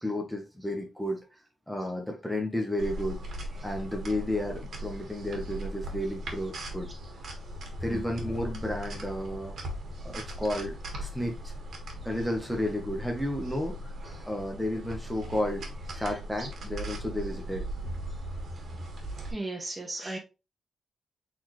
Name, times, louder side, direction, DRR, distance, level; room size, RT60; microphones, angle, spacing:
voice 1, 0.0-1.2 1.7-3.2 3.6-6.9 7.8-9.6 10.0-11.5 12.0-13.9 14.3-17.6, left 1 dB, ahead, 2 dB, 1.1 m, -32 dB
sound 1, 2.8-19.3, right 1 dB, 65° right, 1.6 m, -39 dB
voice 2, 19.3-20.2, right 2 dB, 25° right, 3 dB, 1.2 m, -35 dB
4.3 x 3.9 x 3.1 m, 0.28 s
cardioid pair, 90°, 0 cm